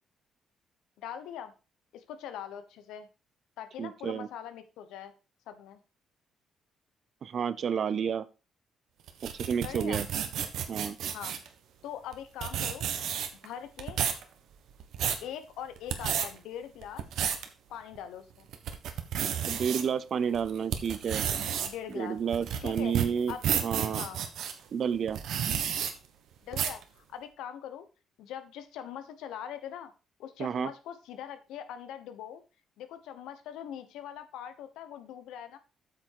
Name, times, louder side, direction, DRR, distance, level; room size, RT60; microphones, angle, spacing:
voice 1, 1.0-1.5 1.9-3.1 3.6-5.1 5.5-5.8 9.6-10.0 11.1-11.4 11.8-12.9 13.4-14.0 15.2-17.0 17.7-18.4 21.6-22.2 22.6-22.9 23.3-23.4 23.8-24.2 26.4-27.8 28.2-29.9 30.2-32.4 32.8-35.6, left 9 dB, 90° left, 10 dB, 1.1 m, -42 dB
voice 2, 3.8-4.3 7.2-8.2 9.2-10.1 10.7-11.0 19.5-21.2 21.9-24.0 24.7-25.2 30.4-30.7, right 7 dB, 55° right, 16 dB, 0.7 m, -30 dB
sound 1, 9.1-11.5 12.1-12.2 12.4-13.5 13.8-14.2 14.7-15.2 15.8-16.3 16.8-17.5 18.0-18.1 18.5-19.8 20.3-24.5 25.1-25.9 26.5-26.8, right 9 dB, 80° right, 1.3 m, -31 dB
8.6 x 6.1 x 4.6 m, 0.32 s
cardioid pair, 90°, 0 cm